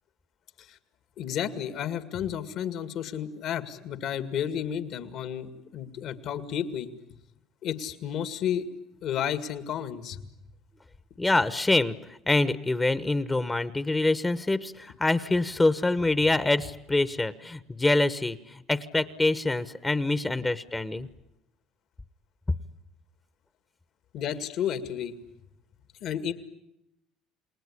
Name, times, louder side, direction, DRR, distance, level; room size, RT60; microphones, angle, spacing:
voice 1, 1.2-6.9 7.6-8.6 9.0-10.2 24.1-25.1 26.0-26.3, left 9 dB, 60° left, 11 dB, 2.2 m, -32 dB
voice 2, 11.2-12.0 12.3-21.1, left 2 dB, 15° left, 14 dB, 1.2 m, -25 dB
29.0 x 20.0 x 10.0 m, 0.85 s
supercardioid pair, 85°, 0 cm